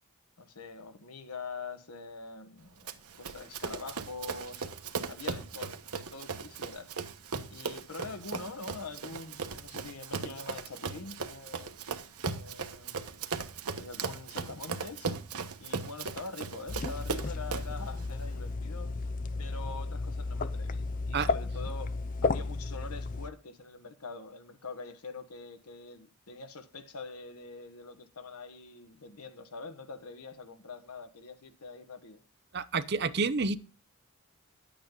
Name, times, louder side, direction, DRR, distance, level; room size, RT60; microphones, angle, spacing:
voice 1, 0.4-2.9 3.2-4.7 5.1-7.0 7.5-11.7 12.3-13.0 13.8-15.1 15.6-18.9 19.4-21.9 22.2-32.2, left 3 dB, 90° left, 1.3 m, -44 dB
Run, 2.9-17.8, right 5 dB, 90° right, 1.1 m, -38 dB
sound 1, 16.7-23.3, left 3 dB, 35° left, 0.5 m, -33 dB
voice 2, 32.5-33.6, right 4 dB, 50° right, 0.7 m, -29 dB
10.5 x 8.7 x 3.8 m
head